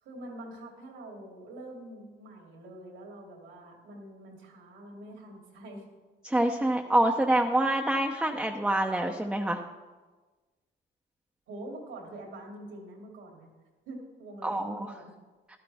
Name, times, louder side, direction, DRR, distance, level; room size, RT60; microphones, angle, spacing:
voice 1, 0.0-5.9 11.5-13.5 13.8-15.1, right 1 dB, 85° right, 0 dB, 3.0 m, -45 dB
voice 2, 6.2-9.6 14.4-14.9, right 1 dB, 5° right, 2 dB, 0.7 m, -26 dB
13.0 x 12.0 x 3.5 m, 1.3 s
cardioid pair, 90°, 20 cm